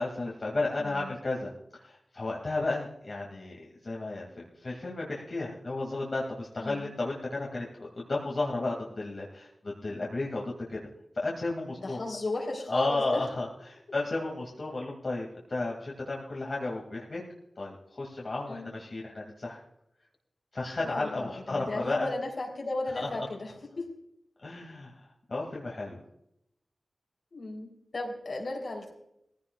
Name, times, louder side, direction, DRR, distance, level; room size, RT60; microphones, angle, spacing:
voice 1, 0.0-1.5 1.8-10.9 11.1-12.0 12.7-17.2 17.6-19.6 20.5-22.1 23.0-23.1 24.4-24.9 25.3-26.0, left 2 dB, 60° left, -3 dB, 2.3 m, -33 dB
voice 2, 0.8-1.1 6.6-6.9 11.8-13.3 18.5-18.8 20.8-23.9 27.3-28.9, left 2 dB, 75° left, 0 dB, 3.6 m, -35 dB
19.0 x 15.5 x 2.4 m, 0.77 s
wide cardioid pair, 65°, 0 cm